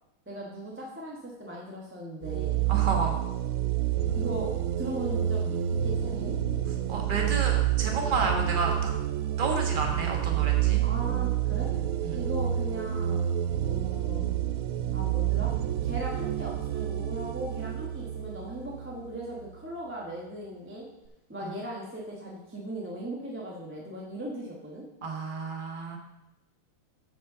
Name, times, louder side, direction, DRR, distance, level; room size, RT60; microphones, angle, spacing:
voice 1, 0.3-2.8 4.1-6.4 10.8-11.7 12.1-13.3 13.6-14.3 14.9-15.5 15.8-20.8 21.3-24.8, right 1 dB, 10° right, -3 dB, 0.9 m, -38 dB
sound 1, 2.2-19.6, right 11 dB, 80° right, 1.4 m, -28 dB
voice 2, 2.7-3.2 6.9-8.9 9.4-10.8 12.0-12.2 21.4-21.5 25.0-26.0, right 3 dB, 25° right, 1 dB, 1.3 m, -30 dB
8.0 x 5.5 x 6.8 m, 0.95 s
omnidirectional pair, 2.4 m